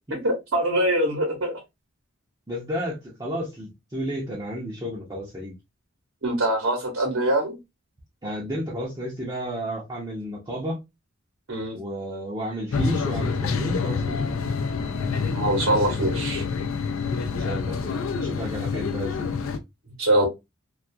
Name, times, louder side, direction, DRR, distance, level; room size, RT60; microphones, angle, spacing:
voice 1, 0.1-1.5 6.2-7.6 11.5-11.8 15.1-16.4 20.0-20.3, right 1 dB, 65° right, 0.8 m, -23 dB
voice 2, 2.5-5.5 8.2-10.8 11.7-14.3 17.4-19.3, equal, 20° right, 0.6 m, -32 dB
sound 1, 12.7-19.6, left 5 dB, 70° left, 0.4 m, -27 dB
2.3 x 2.3 x 2.6 m
head